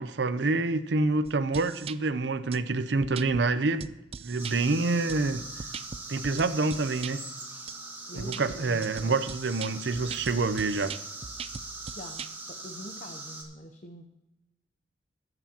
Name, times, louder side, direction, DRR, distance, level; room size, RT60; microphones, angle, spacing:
voice 1, 0.0-3.9 4.2-5.4 6.1-7.2 8.2-10.9, right 3 dB, 75° right, 0.6 m, -27 dB
sound 1, 1.3-2.0 2.5-2.6 3.0-3.4 3.8-4.6 5.1-7.1 7.7-7.8 8.2-12.3, right 6 dB, 35° right, 0.3 m, -40 dB
sound 2, 4.4-13.4, right 2 dB, 10° right, 2.0 m, -42 dB
voice 2, 8.1-9.1 11.9-14.1, left 1 dB, 45° left, 0.8 m, -45 dB
21.0 x 8.0 x 2.9 m
head